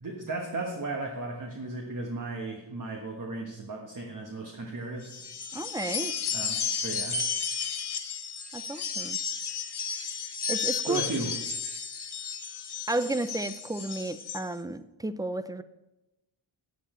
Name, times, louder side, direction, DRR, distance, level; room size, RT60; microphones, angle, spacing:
voice 1, 0.0-5.3 6.3-7.2 10.9-11.3, right 2 dB, 40° right, 1 dB, 1.3 m, -35 dB
sound 1, 5.0-14.4, left 6 dB, 55° left, 1.2 m, -33 dB
voice 2, 5.5-6.1 8.5-9.2 10.5-11.0 12.9-15.6, right 2 dB, 10° right, 13 dB, 0.3 m, -32 dB
9.1 x 8.5 x 4.3 m, 0.99 s
wide cardioid pair, 70°, 48 cm